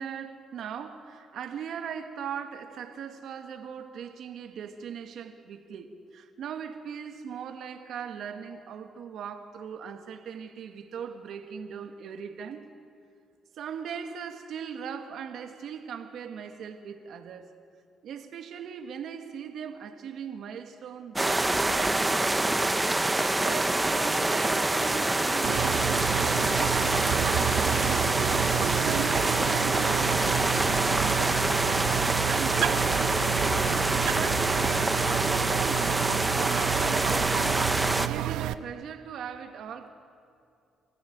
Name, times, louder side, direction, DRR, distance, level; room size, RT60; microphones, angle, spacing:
voice 1, 0.0-12.7 13.6-17.5 18.0-22.8 23.4-28.1 28.8-31.8 32.2-37.6 38.1-39.9, right 7 dB, 70° right, 2.0 m, -39 dB
sound 1, 21.2-38.1, right 2 dB, 15° right, 1.0 m, -26 dB
sound 2, 25.4-38.5, right 13 dB, 90° right, 0.6 m, -30 dB
27.5 x 15.5 x 9.5 m
cardioid pair, 90°, 0 cm